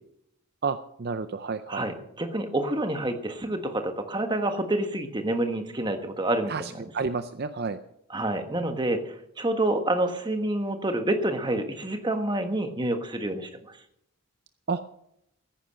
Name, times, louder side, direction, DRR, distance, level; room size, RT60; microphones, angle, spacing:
voice 1, 0.6-1.8 6.5-7.8 14.7-14.8, right 4 dB, 45° right, 11 dB, 0.5 m, -30 dB
voice 2, 1.7-6.7 8.1-13.8, right 1 dB, 20° right, 6 dB, 1.4 m, -28 dB
14.5 x 10.0 x 6.4 m, 0.77 s
head